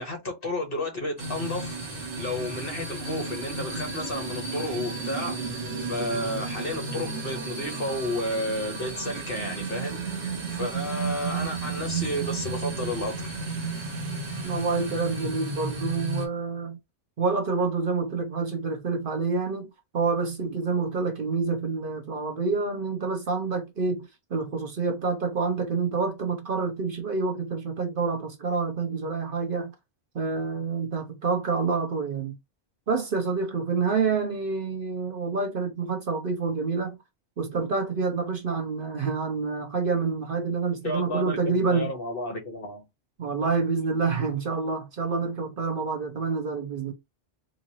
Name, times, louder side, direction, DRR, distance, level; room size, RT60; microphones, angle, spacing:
voice 1, 0.0-1.8 2.2-13.3 40.8-42.8, left 1 dB, 50° left, 1.6 m, -32 dB
sound 1, 1.2-16.3, right 4 dB, 70° right, 1.6 m, -33 dB
voice 2, 14.4-16.8 17.2-29.7 30.1-32.4 32.9-37.0 37.4-41.9 43.2-46.9, right 4 dB, 55° right, 0.8 m, -27 dB
3.9 x 2.7 x 2.9 m
omnidirectional pair, 1.2 m